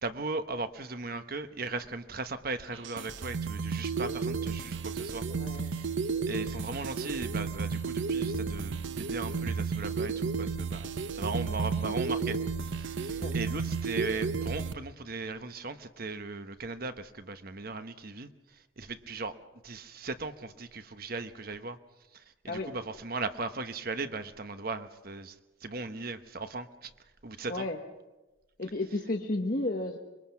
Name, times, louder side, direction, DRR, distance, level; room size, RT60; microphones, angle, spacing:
voice 1, 0.0-5.2 5.5-5.9 6.2-19.3 19.6-21.8 22.1-25.4 25.6-26.9 27.2-27.7, right 3 dB, 50° right, 10 dB, 1.1 m, -38 dB
sound 1, 2.7-14.7, right 5 dB, 75° right, 0.8 m, -32 dB
voice 2, 5.3-5.7 11.5-11.6 11.8-11.9 13.2-13.4 22.5-22.7 27.5-27.8 28.6-30.0, left 2 dB, 45° left, 1 dB, 1.2 m, -33 dB
25.0 x 22.0 x 5.9 m, 1.1 s
head